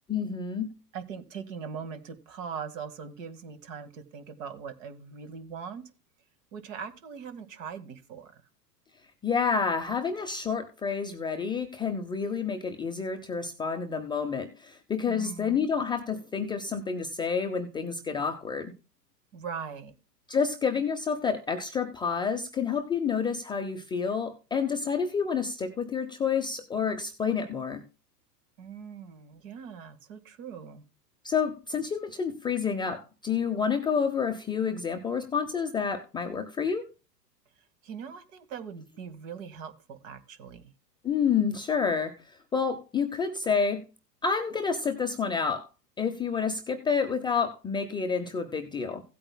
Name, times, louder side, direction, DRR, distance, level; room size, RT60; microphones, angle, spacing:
voice 1, 0.1-0.7 9.2-18.7 20.3-27.8 31.2-36.9 41.0-43.8 44.2-45.7 46.0-49.0, left 6 dB, 10° left, 0.6 m, -29 dB
voice 2, 0.9-5.8 6.5-8.4 15.1-15.7 19.3-19.9 28.6-30.8 37.8-40.7, right 6 dB, 50° right, 1.9 m, -41 dB
16.5 x 8.7 x 2.2 m
figure-of-eight pair, 100°, 48 cm